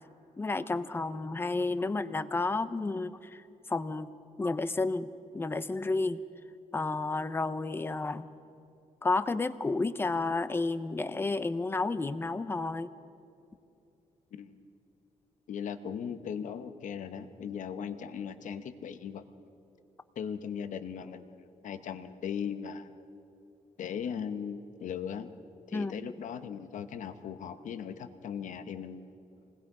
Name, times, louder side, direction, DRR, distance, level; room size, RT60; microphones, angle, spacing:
voice 1, 0.4-4.1 4.4-6.2 6.7-8.3 9.0-12.9 25.7-25.9, left 3 dB, 15° left, 13 dB, 0.6 m, -31 dB
voice 2, 15.5-19.2 20.2-22.9 23.8-25.3 25.7-29.1, left 7 dB, 70° left, 10 dB, 1.0 m, -38 dB
27.5 x 20.5 x 4.9 m, 2.8 s
wide cardioid pair, 170°, 14 cm